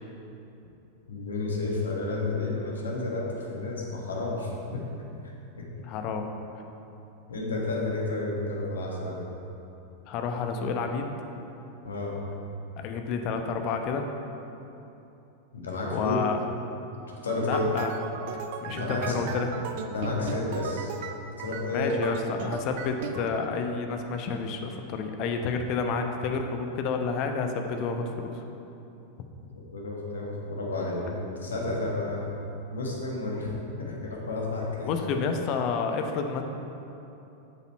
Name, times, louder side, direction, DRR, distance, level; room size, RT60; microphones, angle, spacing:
voice 1, 1.1-4.8 5.6-5.7 7.3-9.2 11.8-12.2 15.5-16.2 17.2-17.6 18.7-19.2 19.9-20.9 21.2-21.9 29.7-32.3 32.7-34.9, left 2 dB, 70° left, -2 dB, 1.6 m, -31 dB
voice 2, 5.8-6.3 10.1-11.1 12.8-14.1 15.9-16.4 17.4-17.9 18.3-19.5 21.7-28.4 34.8-36.4, left 5 dB, 40° left, 5 dB, 0.8 m, -30 dB
sound 1, 17.3-23.3, right 6 dB, 50° right, 0.5 m, -37 dB
8.0 x 7.2 x 4.4 m, 2.9 s
figure-of-eight pair, 90°, 0 cm